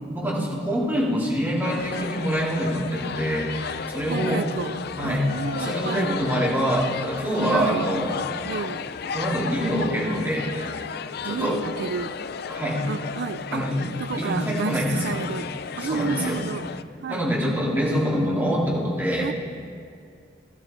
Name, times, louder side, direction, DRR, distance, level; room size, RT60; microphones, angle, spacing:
voice 1, 0.1-4.4 5.0-5.3 5.6-8.2 9.1-10.5 11.2-11.6 12.5-12.8 13.5-13.9 14.2-15.2 15.8-16.4 17.1-19.3, equal, 10° right, -5 dB, 2.8 m, -25 dB
sound 1, 1.6-16.8, left 6 dB, 60° left, 0.5 m, -33 dB
voice 2, 4.1-6.2 7.5-7.9 8.4-8.9 11.2-12.1 12.9-13.7 14.0-14.8 15.0-15.5 15.8-16.7 17.0-17.2 19.2-19.3, right 6 dB, 65° right, 15 dB, 0.3 m, -31 dB
16.5 x 13.0 x 4.4 m, 2.2 s
head